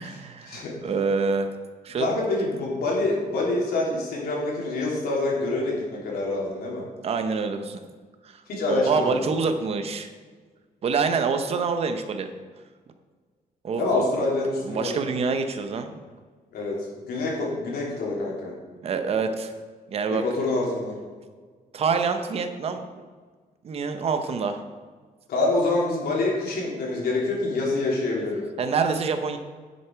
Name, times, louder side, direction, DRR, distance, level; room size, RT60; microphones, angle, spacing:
voice 1, 0.0-1.5 1.8-2.1 7.0-7.8 8.2-8.4 8.7-10.1 10.8-12.3 13.6-14.0 14.6-15.9 18.8-19.5 19.9-20.2 21.7-22.9 23.6-24.6 28.6-29.4, right 5 dB, 40° right, 7 dB, 0.8 m, -26 dB
voice 2, 2.0-6.8 8.5-9.2 13.8-14.9 16.5-16.8 17.1-18.5 20.1-20.9 25.3-28.4, left 2 dB, 85° left, -3 dB, 3.1 m, -26 dB
10.5 x 6.8 x 4.6 m, 1.5 s
wide cardioid pair, 180°, 15 cm